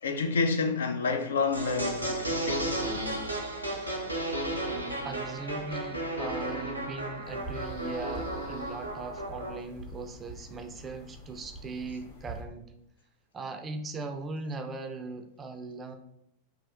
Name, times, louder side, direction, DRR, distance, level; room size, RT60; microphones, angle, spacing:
voice 1, 0.0-2.9, left 4 dB, 65° left, 0.3 m, -29 dB
sound 1, 1.5-9.6, right 1 dB, 85° right, 0.5 m, -33 dB
voice 2, 3.7-4.0 5.0-12.7 13.3-15.9, right 3 dB, 20° right, 0.4 m, -39 dB
sound 2, 7.2-12.4, right 1 dB, 50° left, 1.3 m, -45 dB
3.2 x 2.3 x 2.4 m
figure-of-eight pair, 90°, 0 cm